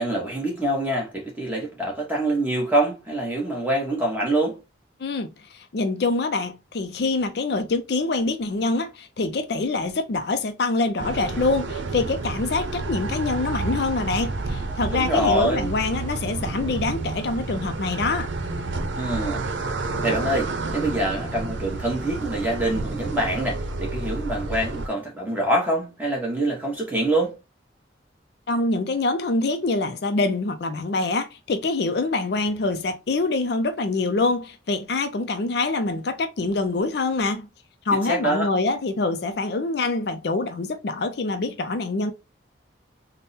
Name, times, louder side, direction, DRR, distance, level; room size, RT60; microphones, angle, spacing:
voice 1, 0.0-4.6 14.9-15.7 19.0-19.4 20.0-27.3 37.9-38.5, right 1 dB, 10° right, 1.1 m, -25 dB
voice 2, 5.0-18.3 28.5-37.5 37.9-42.1, left 3 dB, 60° left, 0.4 m, -25 dB
sound 1, 11.0-24.9, right 3 dB, 90° right, 0.7 m, -30 dB
3.5 x 2.1 x 4.1 m
head